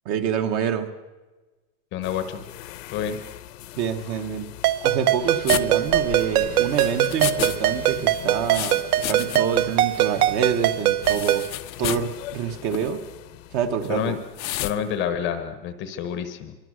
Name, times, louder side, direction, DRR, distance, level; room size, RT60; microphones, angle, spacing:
voice 1, 0.0-0.9 3.8-4.5 4.8-8.8 9.1-11.5 11.8-13.0 13.5-14.2, right 7 dB, 30° right, 8 dB, 1.1 m, -27 dB
voice 2, 1.9-2.4 2.9-3.2 13.9-14.2 14.6-16.6, left 8 dB, 20° left, 10 dB, 1.0 m, -28 dB
sound 1, 2.0-14.6, left 14 dB, 50° left, 1.0 m, -41 dB
Ringtone, 4.6-11.5, right 13 dB, 60° right, 0.9 m, -22 dB
sound 2, 5.5-7.6 7.8-9.6 9.9-10.0 11.0-12.1 12.6-12.9 14.4-14.8, left 14 dB, 90° left, 1.2 m, -31 dB
24.5 x 24.0 x 6.3 m, 1.2 s
supercardioid pair, 170°, 50 cm